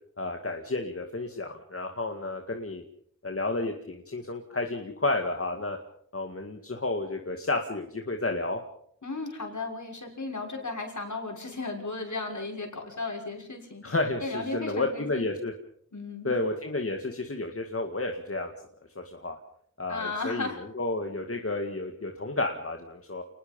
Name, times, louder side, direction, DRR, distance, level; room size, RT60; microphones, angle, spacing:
voice 1, 0.2-2.8 3.2-5.8 6.1-8.6 13.8-15.5 16.2-18.5 19.0-19.4 19.8-23.2, left 2 dB, 45° left, 4 dB, 2.1 m, -31 dB
voice 2, 9.0-13.8 14.2-15.3 15.9-16.3 19.9-20.6, left 3 dB, 70° left, 2 dB, 6.2 m, -35 dB
29.5 x 20.0 x 5.5 m, 0.68 s
wide cardioid pair, 80°, 31 cm